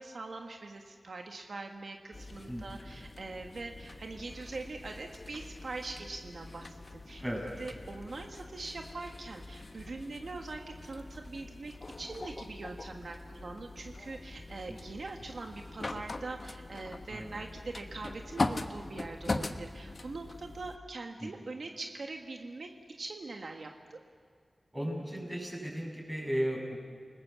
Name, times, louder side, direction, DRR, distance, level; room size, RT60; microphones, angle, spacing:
voice 1, 0.0-7.2 7.6-22.7 23.0-24.0, right 3 dB, 75° right, 3 dB, 1.6 m, -43 dB
sound 1, 2.1-20.8, left 2 dB, 45° left, 1.2 m, -41 dB
voice 2, 2.5-2.9 7.2-7.4 17.1-17.3 21.2-21.3 24.7-26.8, equal, 10° right, 0 dB, 6.7 m, -35 dB
29.5 x 20.0 x 7.1 m, 2.1 s
wide cardioid pair, 90°, 0 cm